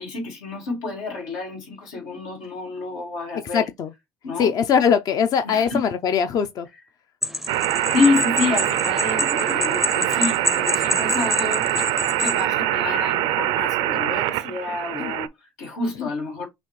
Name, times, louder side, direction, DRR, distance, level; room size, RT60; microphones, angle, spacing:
voice 1, 0.0-3.6 4.2-4.5 5.4-5.8 7.9-16.5, left 3 dB, 90° left, 2.0 m, -28 dB
voice 2, 3.5-3.9 4.4-6.7 15.0-15.1 16.0-16.1, left 7 dB, 50° left, 0.5 m, -21 dB
sound 1, 7.2-12.4, left 3 dB, 5° right, 0.5 m, -27 dB
sound 2, 7.5-15.3, right 14 dB, 80° right, 0.4 m, -24 dB
6.1 x 2.5 x 3.2 m
supercardioid pair, 95°, 8 cm